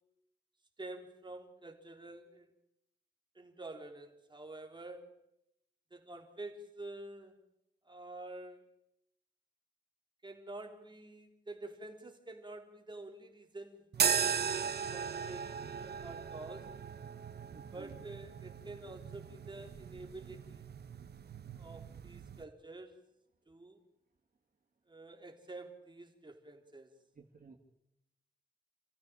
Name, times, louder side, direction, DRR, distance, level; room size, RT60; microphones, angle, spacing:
voice 1, 0.8-2.5 3.3-5.2 5.9-7.4 7.8-8.7 10.2-14.6 14.9-16.8 17.7-20.7 21.6-23.0 23.5-23.8 24.9-27.0, right 2 dB, 30° right, 3 dB, 3.8 m, -48 dB
sound 1, 13.9-22.4, right 7 dB, 80° right, 0.9 m, -37 dB
voice 2, 17.5-18.0 27.2-27.6, right 4 dB, 60° right, 1 dB, 2.4 m, -54 dB
28.5 x 15.5 x 8.8 m, 0.81 s
wide cardioid pair, 95°, 17 cm